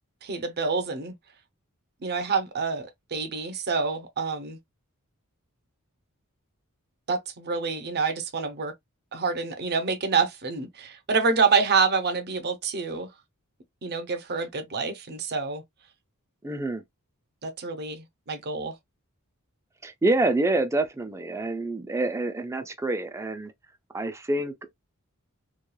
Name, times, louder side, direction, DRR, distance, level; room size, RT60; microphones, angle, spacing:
voice 1, 0.2-1.1 2.0-4.6 7.1-8.7 9.1-13.1 13.8-15.6 17.4-18.7, right 5 dB, 45° right, 0.6 m, -27 dB
voice 2, 16.4-16.8 19.8-23.5 23.9-24.7, right 2 dB, 15° right, 0.3 m, -27 dB
3.1 x 2.2 x 2.2 m
head